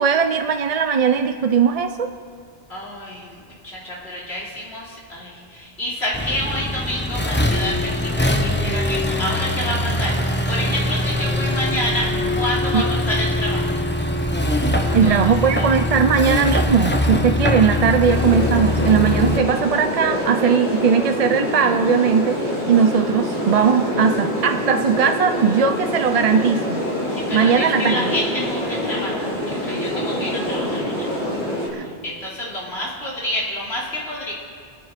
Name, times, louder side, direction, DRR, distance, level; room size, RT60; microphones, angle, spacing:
voice 1, 0.0-2.1 12.7-12.8 14.9-22.4 22.7-26.8 27.3-28.1 31.7-31.8, right 6 dB, 45° right, 7 dB, 0.5 m, -18 dB
voice 2, 2.7-13.7 14.9-15.2 15.5-15.7 27.1-31.1 31.8-34.3, left 1 dB, 85° left, -5 dB, 3.6 m, -28 dB
Accelerating revving vroom, 6.1-19.4, left 1 dB, 10° left, 1.0 m, -22 dB
sound 1, 18.0-31.7, equal, 35° left, 4.8 m, -25 dB
26.5 x 10.0 x 5.1 m, 2.2 s
omnidirectional pair, 1.1 m